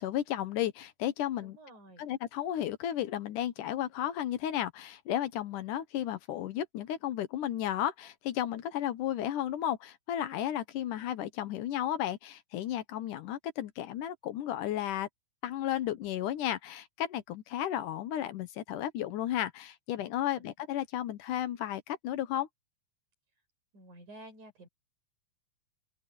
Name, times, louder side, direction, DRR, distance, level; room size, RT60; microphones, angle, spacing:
voice 1, 0.0-1.6 2.0-15.1 15.4-22.5, left 11 dB, 75° left, 2.5 m, -33 dB
voice 2, 1.4-2.1 20.2-20.4 23.7-24.7, right 1 dB, 65° right, 7.9 m, -51 dB
open air
omnidirectional pair, 3.8 m